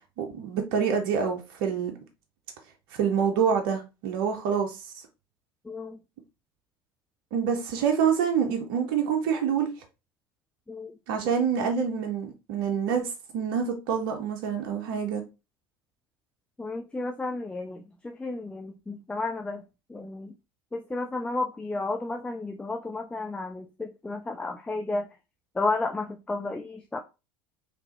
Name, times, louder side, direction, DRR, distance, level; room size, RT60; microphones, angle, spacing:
voice 1, 0.2-1.9 2.9-4.9 7.3-9.7 11.1-15.2, right 7 dB, 65° right, 0.8 m, -26 dB
voice 2, 5.6-6.0 10.7-10.9 16.6-19.6 19.9-20.3 20.7-25.1 25.5-27.0, left 3 dB, 10° left, 0.4 m, -32 dB
3.4 x 2.8 x 3.0 m
hypercardioid pair, 85°, 12 cm